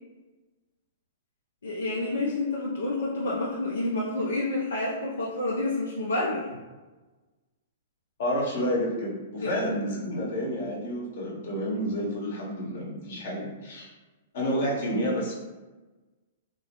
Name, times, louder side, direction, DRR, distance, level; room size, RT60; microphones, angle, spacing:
voice 1, 1.6-6.5 9.4-9.5, left 2 dB, 80° left, -5 dB, 0.4 m, -29 dB
voice 2, 8.2-13.9 14.3-15.3, equal, 65° left, -3 dB, 0.8 m, -29 dB
2.5 x 2.0 x 2.9 m, 1.2 s
hypercardioid pair, 120°, 0 cm